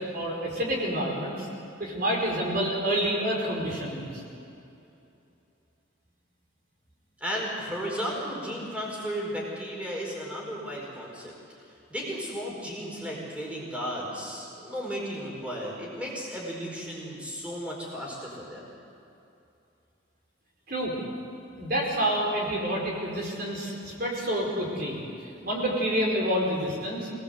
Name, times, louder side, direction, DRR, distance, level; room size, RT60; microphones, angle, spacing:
voice 1, 0.0-1.5 1.8-4.2 20.7-21.0 21.6-25.0 25.4-27.1, equal, 50° right, -2 dB, 4.7 m, -28 dB
voice 2, 7.2-11.3 11.9-18.7, equal, 5° right, -3 dB, 4.9 m, -34 dB
25.5 x 19.0 x 8.1 m, 2.8 s
head